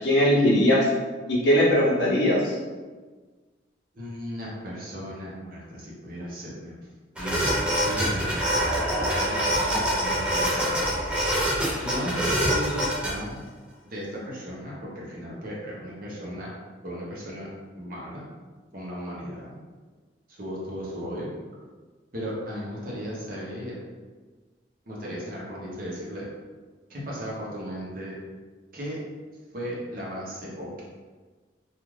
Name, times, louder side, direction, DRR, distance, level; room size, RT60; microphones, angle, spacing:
voice 1, 0.0-0.9 1.3-2.6, left 1 dB, 70° left, -4 dB, 0.7 m, -20 dB
voice 2, 3.9-6.8 7.2-8.3 9.1-11.1 11.8-13.4 13.8-16.5 16.8-17.5 17.8-18.2 18.7-19.6 20.3-21.3 22.1-23.8 24.9-26.3 26.9-28.2 28.7-29.0 29.5-30.8, equal, 50° right, -5 dB, 0.8 m, -36 dB
sound 1, 7.2-13.1, equal, 5° right, 0.5 m, -25 dB
2.4 x 2.4 x 3.2 m, 1.4 s
head